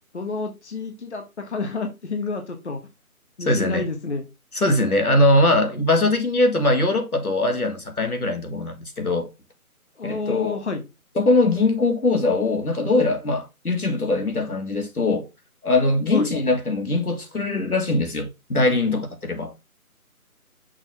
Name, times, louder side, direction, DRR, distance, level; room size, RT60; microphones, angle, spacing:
voice 1, 0.1-2.8 3.4-4.2 10.0-10.8 16.1-16.3, left 3 dB, 50° left, 1.3 m, -29 dB
voice 2, 3.5-3.8 4.5-9.3 10.0-10.6 11.2-15.3 15.6-19.5, left 2 dB, 80° left, 2.0 m, -21 dB
6.2 x 3.2 x 5.7 m
figure-of-eight pair, 155°, 44 cm